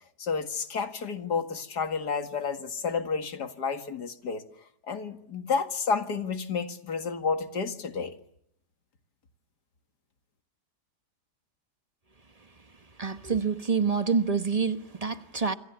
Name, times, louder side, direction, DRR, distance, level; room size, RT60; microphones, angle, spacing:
voice 1, 0.2-4.4 4.8-8.2, left 5 dB, 85° left, 2.5 m, -30 dB
voice 2, 13.0-15.5, right 5 dB, 25° right, 1.2 m, -27 dB
27.0 x 26.5 x 7.1 m
omnidirectional pair, 1.7 m